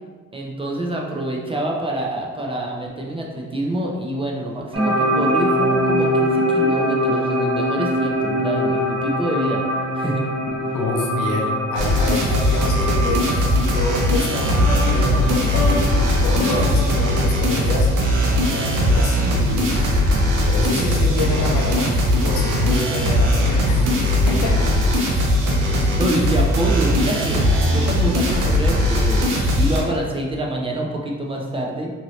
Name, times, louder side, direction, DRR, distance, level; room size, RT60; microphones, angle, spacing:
voice 1, 0.3-9.6 9.9-10.2 25.7-31.9, right 1 dB, 20° right, -1 dB, 0.5 m, -26 dB
sound 1, 4.7-18.7, equal, 50° right, 1.1 m, -24 dB
voice 2, 10.7-13.3 13.7-17.9 18.5-19.9 20.5-23.9 24.3-24.8 25.6-25.9, left 2 dB, 80° left, 0 dB, 0.6 m, -27 dB
sound 2, 11.7-29.8, left 1 dB, 85° right, 0.7 m, -19 dB
sound 3, 14.6-18.6, left 1 dB, 25° left, 0.7 m, -29 dB
2.8 x 2.6 x 3.0 m, 1.5 s
cardioid pair, 90°, 30 cm